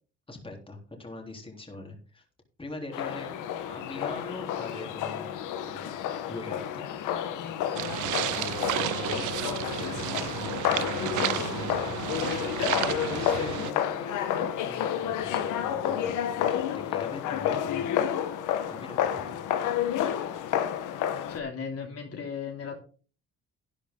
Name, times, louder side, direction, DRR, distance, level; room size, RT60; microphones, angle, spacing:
voice 1, 0.3-2.2 2.6-3.4 3.7-5.3 5.6-6.9 7.8-17.9 18.7-19.5, left 2 dB, 15° left, 1 dB, 3.4 m, -42 dB
sound 1, 2.9-21.4, left 10 dB, 90° left, 1.3 m, -30 dB
sound 2, 7.7-13.7, right 16 dB, 80° right, 0.6 m, -32 dB
voice 2, 21.3-22.8, left 6 dB, 55° left, 1 dB, 2.9 m, -36 dB
12.0 x 9.9 x 3.8 m, 0.39 s
cardioid pair, 90°, 30 cm